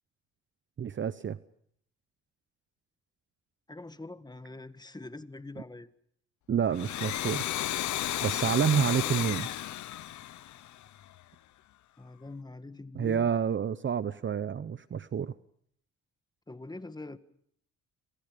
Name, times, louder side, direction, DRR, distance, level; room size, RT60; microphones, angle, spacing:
voice 1, 0.8-1.4 6.5-7.5 8.2-9.5 12.9-15.3, right 7 dB, 40° right, 15 dB, 0.9 m, -28 dB
voice 2, 3.7-5.9 12.0-13.3 16.5-17.2, left 2 dB, 15° left, 12 dB, 1.7 m, -44 dB
Domestic sounds home sounds, 6.7-11.2, left 13 dB, 70° left, 1.0 m, -33 dB
28.0 x 26.5 x 5.2 m, 0.66 s
cardioid pair, 90°, 30 cm